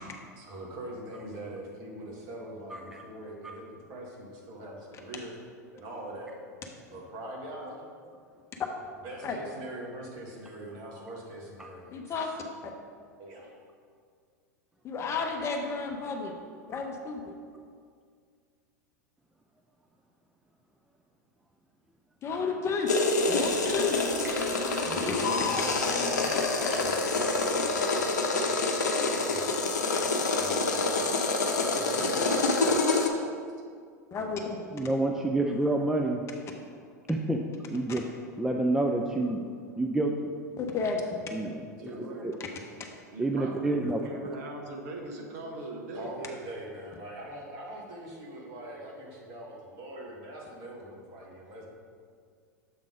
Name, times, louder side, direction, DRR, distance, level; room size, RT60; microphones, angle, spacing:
voice 1, 0.4-5.3 5.7-6.4 6.9-7.8 9.0-11.9 12.2-12.3 13.2-13.5 24.9-29.5 30.4-30.9 31.5-32.2 45.6-45.7 45.9-51.7, right 1 dB, 45° right, -2 dB, 1.7 m, -42 dB
voice 2, 2.7-3.0 8.1-8.2 24.7-24.8 27.2-27.3 34.7-36.2 37.1-37.4 37.7-38.0 38.4-39.4 39.8-40.2 41.3-41.6 42.2-42.4 43.2-44.0, right 2 dB, 5° right, 2 dB, 0.4 m, -28 dB
voice 3, 11.9-12.3 12.6-12.7 14.8-16.3 16.7-17.4 22.2-22.9 23.3-24.0 24.9-25.1 32.0-32.8 34.1-34.6 40.6-41.0, left 4 dB, 30° left, 3 dB, 0.8 m, -32 dB
sound 1, 22.9-33.1, left 3 dB, 75° left, 0.7 m, -27 dB
sound 2, 23.2-28.2, right 1 dB, 85° right, 1.3 m, -45 dB
voice 4, 41.4-42.5 43.1-46.1, right 2 dB, 60° right, 1 dB, 1.1 m, -40 dB
7.5 x 3.7 x 4.9 m, 2.1 s
figure-of-eight pair, 90°, 9 cm